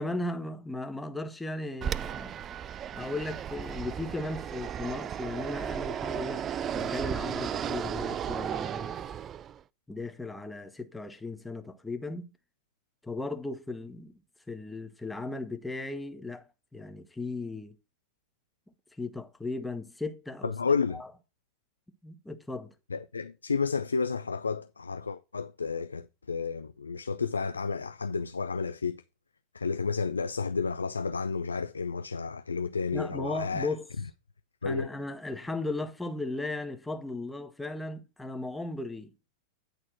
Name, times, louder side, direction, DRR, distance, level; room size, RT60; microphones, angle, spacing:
voice 1, 0.0-2.4 2.9-6.5 6.7-9.0 9.9-12.3 13.0-14.1 14.5-16.4 16.7-17.7 19.0-20.5 20.9-21.1 22.0-22.7 32.9-33.9 34.6-39.1, left 2 dB, 5° left, 1.0 m, -36 dB
Fixed-wing aircraft airplane, 1.8-9.6, right 9 dB, 25° right, 0.3 m, -35 dB
voice 2, 20.4-21.0 22.9-29.0 29.5-33.7 34.6-34.9, left 5 dB, 75° left, 0.4 m, -31 dB
9.8 x 4.2 x 6.0 m
figure-of-eight pair, 90°, 0 cm